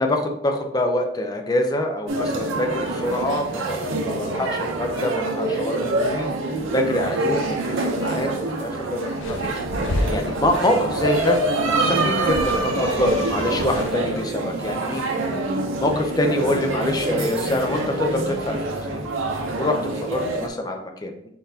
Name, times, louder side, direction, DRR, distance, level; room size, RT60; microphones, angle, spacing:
voice 1, 0.0-6.3 6.7-7.4 7.7-9.6 10.1-11.4 11.8-15.0 15.8-18.9 19.5-21.1, left 1 dB, 20° left, 3 dB, 0.5 m, -25 dB
sound 1, 2.1-20.5, right 2 dB, 80° right, 0.6 m, -25 dB
sound 2, 9.1-14.2, left 1 dB, 75° left, 0.6 m, -32 dB
4.7 x 3.9 x 2.7 m, 0.78 s
head